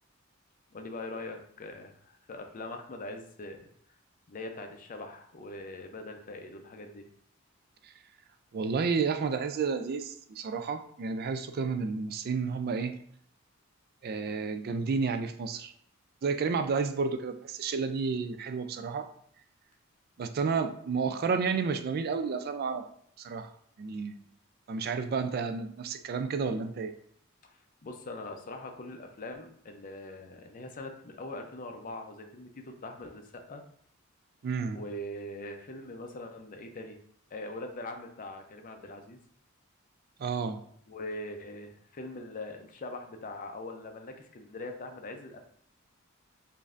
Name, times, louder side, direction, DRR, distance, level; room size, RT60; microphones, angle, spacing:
voice 1, 0.7-3.6 4.3-7.0 27.4-33.6 34.7-37.0 37.3-39.2 40.9-45.5, left 2 dB, 40° left, 4 dB, 0.5 m, -42 dB
voice 2, 8.5-13.0 14.0-15.7 16.2-19.1 20.2-22.9 23.2-23.5 23.8-24.2 24.7-26.9 34.4-34.8 40.2-40.6, right 5 dB, 50° right, 9 dB, 0.3 m, -31 dB
5.1 x 2.6 x 2.4 m, 0.64 s
head